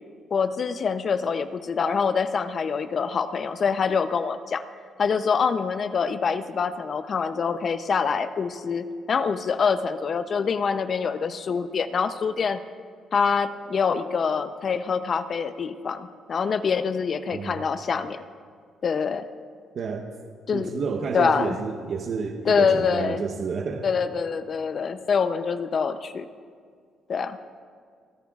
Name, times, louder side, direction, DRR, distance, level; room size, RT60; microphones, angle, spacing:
voice 1, 0.3-4.6 5.0-12.6 13.1-18.2 18.8-19.3 20.5-20.8 21.1-21.6 22.4-23.3 23.8-26.3 27.1-27.4, left 6 dB, 50° left, 11 dB, 0.6 m, -25 dB
voice 2, 19.7-20.1 20.5-23.9, right 5 dB, 60° right, 3 dB, 0.9 m, -30 dB
29.5 x 10.0 x 2.4 m, 2.1 s
cardioid pair, 90°, 0 cm